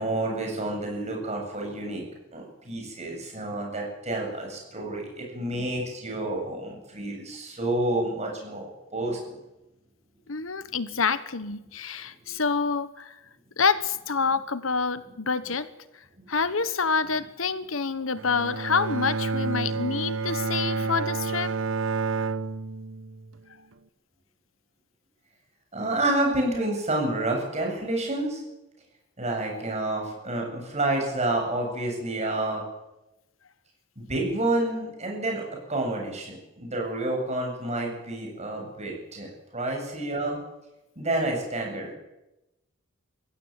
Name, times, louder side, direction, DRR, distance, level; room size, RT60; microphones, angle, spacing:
voice 1, 0.0-2.0 2.3-9.4 16.2-16.3 25.7-28.4 29.2-32.6 34.0-40.4 41.0-41.9, right 2 dB, 35° right, 1 dB, 7.8 m, -29 dB
voice 2, 10.3-13.2 13.6-15.7 16.3-21.5, left 5 dB, 80° left, 14 dB, 1.3 m, -27 dB
Bowed string instrument, 18.2-23.4, right 4 dB, 75° right, 1.0 m, -29 dB
22.0 x 16.0 x 8.9 m, 0.96 s
head